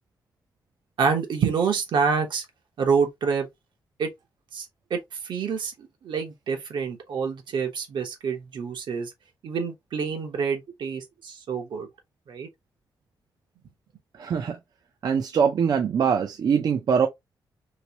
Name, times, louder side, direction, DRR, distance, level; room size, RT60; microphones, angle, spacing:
voice 1, 1.0-2.4 2.8-3.5 4.0-4.1 4.5-9.1 9.4-11.9 12.3-12.5, right 5 dB, 80° right, 1.1 m, -27 dB
voice 2, 14.2-14.6 15.0-17.1, right 7 dB, 55° right, 0.4 m, -23 dB
3.1 x 3.0 x 2.8 m
wide cardioid pair, 180°, 8 cm